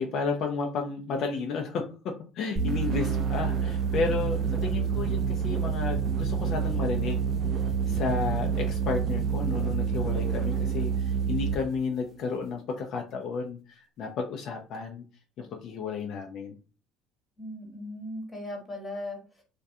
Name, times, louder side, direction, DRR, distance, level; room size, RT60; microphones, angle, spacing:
voice 1, 0.0-7.2 7.9-15.0 15.4-16.6, left 4 dB, 55° left, 2 dB, 0.4 m, -32 dB
voice 2, 2.6-3.2 17.4-19.4, left 1 dB, 10° left, 1 dB, 1.0 m, -38 dB
sound 1, 2.6-11.7, right 6 dB, 40° right, 0.4 m, -28 dB
2.3 x 2.1 x 2.6 m, 0.37 s
supercardioid pair, 110°, 0 cm